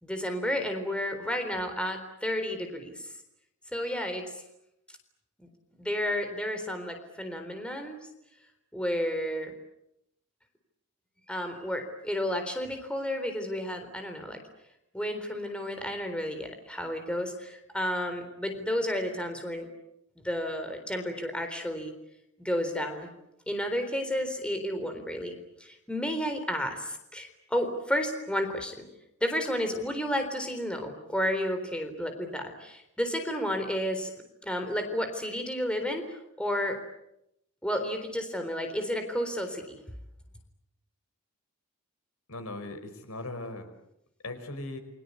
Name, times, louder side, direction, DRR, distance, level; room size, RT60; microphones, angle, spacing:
voice 1, 0.0-3.1 3.7-4.2 5.4-5.5 5.8-8.0 8.7-9.5 11.3-14.4 14.9-19.7 20.2-21.9 22.4-23.1 23.5-25.4 25.6-28.8 29.2-34.1 34.4-36.8 37.6-39.8, equal, 5° left, 5 dB, 3.9 m, -31 dB
voice 2, 42.3-43.7 44.2-44.8, left 2 dB, 85° left, 8 dB, 4.9 m, -38 dB
29.0 x 24.0 x 8.4 m, 0.83 s
head